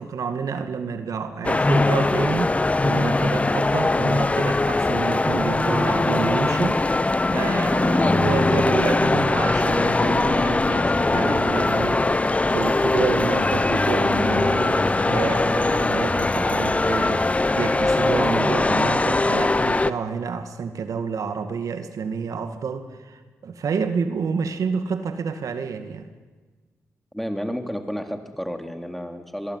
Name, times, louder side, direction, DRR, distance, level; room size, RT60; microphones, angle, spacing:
voice 1, 0.0-2.5 2.8-6.8 7.3-26.1, right 5 dB, 75° right, 8 dB, 2.2 m, -29 dB
sound 1, 1.4-19.9, left 2 dB, 25° left, 1.1 m, -21 dB
voice 2, 27.1-29.6, equal, ahead, 6 dB, 3.6 m, -31 dB
26.5 x 22.0 x 9.7 m, 1.3 s
cardioid pair, 70°, 6 cm